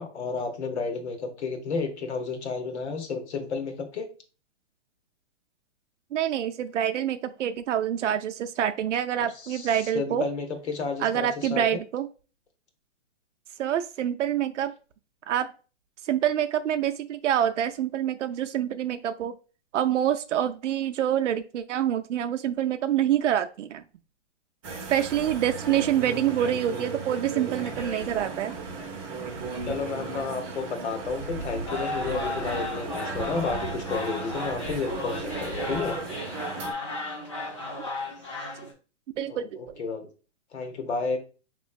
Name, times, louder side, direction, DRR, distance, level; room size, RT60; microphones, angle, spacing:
voice 1, 0.0-4.1 9.2-11.8 29.7-36.0 39.3-40.1 40.5-41.2, left 4 dB, 70° left, 5 dB, 1.0 m, -32 dB
voice 2, 6.1-10.2 11.0-12.1 13.6-14.7 15.3-15.5 16.0-19.3 19.7-23.8 24.9-28.6 39.2-39.6, right 10 dB, 85° right, 8 dB, 0.5 m, -26 dB
sound 1, 24.6-36.7, right 4 dB, 30° right, 0.7 m, -36 dB
sound 2, 31.6-38.7, left 2 dB, 25° left, 0.5 m, -34 dB
5.1 x 3.0 x 2.3 m, 0.35 s
hypercardioid pair, 170°, 36 cm